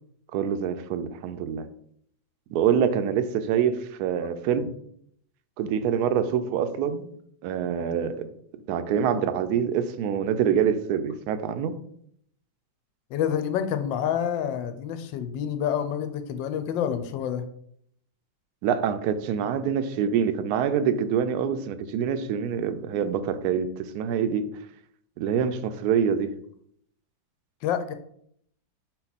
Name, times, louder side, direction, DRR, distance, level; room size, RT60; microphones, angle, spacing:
voice 1, 0.3-1.7 2.5-4.7 5.6-7.1 7.4-8.3 8.7-11.8 18.6-24.4 25.2-26.3, right 8 dB, 70° right, 1.0 m, -25 dB
voice 2, 13.1-17.4 27.6-27.9, left 9 dB, 85° left, 1.3 m, -28 dB
5.9 x 4.4 x 4.1 m
omnidirectional pair, 2.0 m